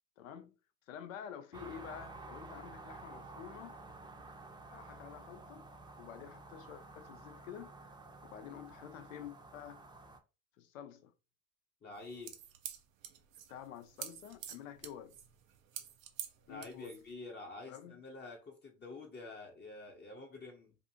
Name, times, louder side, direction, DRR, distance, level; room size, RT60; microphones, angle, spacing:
voice 1, 0.2-0.5 0.9-3.8 4.7-5.7 6.0-7.7 8.2-9.8 10.6-11.1 13.5-15.2 16.5-17.0 17.6-18.0, left 9 dB, 90° left, 0.5 m, -49 dB
sound 1, 1.5-10.2, right 3 dB, 10° right, 0.5 m, -51 dB
voice 2, 11.8-12.4 16.5-20.7, left 3 dB, 25° left, 0.7 m, -48 dB
sound 2, 11.9-17.1, right 10 dB, 85° right, 0.5 m, -47 dB
2.6 x 2.5 x 2.7 m
hypercardioid pair, 75°, 39 cm